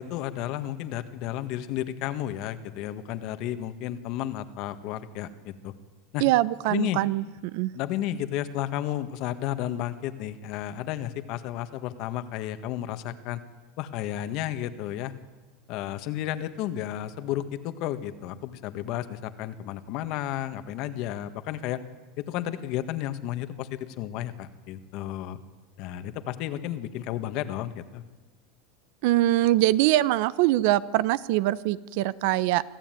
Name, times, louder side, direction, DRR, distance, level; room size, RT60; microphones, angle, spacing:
voice 1, 0.0-5.7 6.1-6.2 6.6-7.0 7.7-13.4 13.8-15.1 15.7-21.8 22.2-25.4 25.8-28.0, left 12 dB, 50° left, 10 dB, 1.6 m, -32 dB
voice 2, 6.2-7.7 29.0-32.6, right 16 dB, 65° right, 18 dB, 0.7 m, -23 dB
24.5 x 15.0 x 9.2 m, 1.3 s
supercardioid pair, 145°, 0 cm